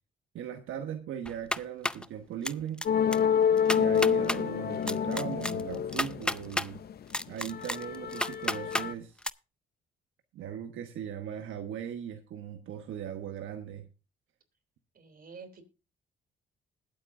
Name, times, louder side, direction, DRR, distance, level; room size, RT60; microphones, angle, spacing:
voice 1, 0.3-2.9 3.7-6.8 7.3-9.2 10.3-13.8, right 9 dB, 80° right, 1.3 m, -38 dB
sound 1, 1.3-2.1 2.4-2.9 3.1-3.2 3.6-4.4 4.9-6.7 7.1-8.9 9.2-9.3, left 1 dB, 5° left, 0.4 m, -31 dB
sound 2, 2.9-6.9 7.4-8.9, left 8 dB, 50° left, 0.6 m, -28 dB
voice 2, 14.9-15.6, right 5 dB, 45° right, 3.2 m, -48 dB
20.5 x 8.4 x 2.6 m
cardioid pair, 90°, 20 cm